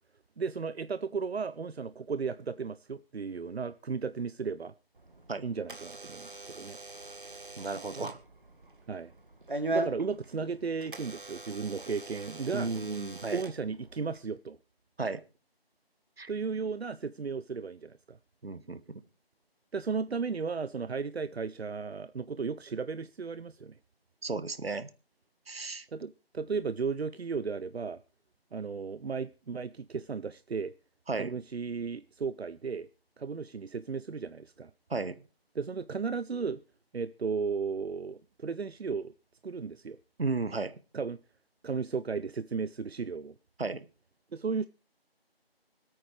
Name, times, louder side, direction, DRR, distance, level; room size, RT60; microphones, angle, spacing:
voice 1, 0.4-4.7 5.4-6.8 8.9-9.1 9.7-12.7 13.3-14.6 16.3-18.2 19.7-23.7 25.9-28.0 28.5-30.7 31.2-32.9 33.2-34.7 35.6-36.6 36.9-39.1 39.4-40.0 40.9-41.2 41.6-43.3 44.3-44.7, right 5 dB, 90° right, 0.6 m, -35 dB
Door / Alarm, 4.9-14.2, right 2 dB, 55° right, 1.8 m, -40 dB
voice 2, 7.6-8.2 12.5-13.4 15.0-15.2 16.2-16.3 18.4-19.0 24.2-24.9 25.5-25.9 31.1-31.3 34.9-35.2 40.2-40.7 43.6-43.9, right 3 dB, 70° right, 1.2 m, -34 dB
25.5 x 8.9 x 3.3 m
figure-of-eight pair, 170°, 31 cm